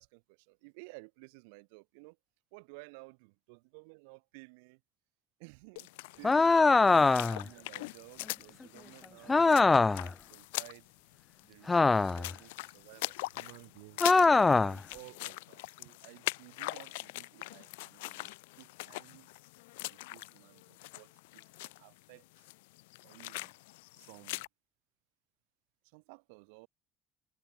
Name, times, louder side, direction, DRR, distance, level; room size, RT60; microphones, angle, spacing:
voice 1, 0.0-2.2 2.5-4.8 5.4-5.9 6.2-10.9 11.4-14.0 14.6-18.3 18.6-19.3 19.9-22.5 23.0-23.5 23.9-24.5 25.8-26.7, right 31 dB, 80° right, 7.9 m, -55 dB
sound 1, 5.8-24.5, left 23 dB, 80° left, 1.8 m, -43 dB
sound 2, 6.2-7.5 9.3-10.1 11.7-12.3 14.0-14.8, left 3 dB, 25° left, 0.3 m, -23 dB
hypercardioid pair, 55°, 0 cm